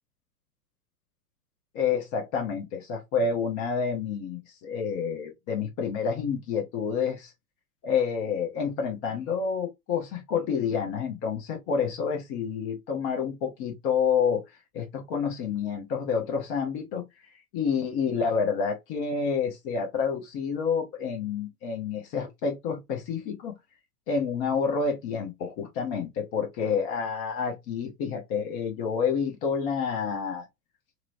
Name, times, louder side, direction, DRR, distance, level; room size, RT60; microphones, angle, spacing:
voice 1, 1.7-7.3 7.8-14.4 14.7-17.0 17.5-23.6 24.1-30.5, left 6 dB, 35° left, 0.9 m, -28 dB
2.9 x 2.2 x 2.5 m
figure-of-eight pair, 100°, 47 cm